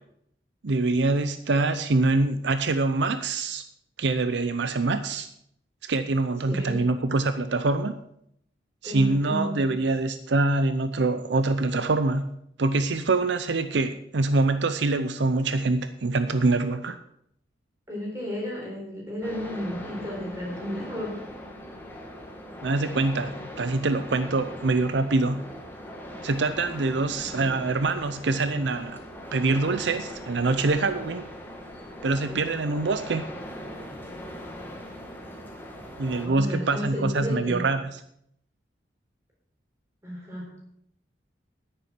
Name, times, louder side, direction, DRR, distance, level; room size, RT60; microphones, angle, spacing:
voice 1, 0.6-3.6 4.0-5.3 5.8-8.0 8.8-12.3 12.6-17.0 22.6-25.4 26.2-29.0 29.3-31.3 32.0-33.3 36.0-38.0, right 3 dB, 75° right, 10 dB, 0.6 m, -25 dB
voice 2, 6.5-6.8 8.8-9.7 17.9-21.2 32.3-32.5 36.2-37.6 40.0-40.5, left 1 dB, 15° right, -2 dB, 4.2 m, -33 dB
sound 1, 19.2-36.3, equal, 10° left, 1.5 m, -40 dB
10.0 x 9.6 x 5.9 m, 0.72 s
head